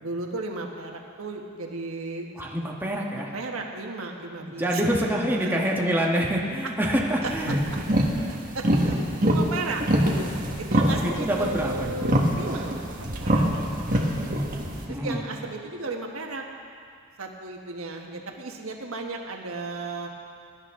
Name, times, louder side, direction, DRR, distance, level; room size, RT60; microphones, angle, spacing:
voice 1, 0.0-2.3 3.2-4.8 5.3-5.5 7.2-7.3 8.3-9.0 9.2-10.3 10.6-12.8 13.2-14.1 14.9-16.4 17.2-20.1, right 3 dB, 75° right, 2 dB, 1.3 m, -35 dB
voice 2, 2.4-3.3 4.6-7.6 11.0-12.1 14.9-15.2, equal, 10° right, -2 dB, 1.3 m, -26 dB
sound 1, 7.2-14.9, equal, 40° right, 1.5 m, -25 dB
22.0 x 11.0 x 3.7 m, 2.3 s
head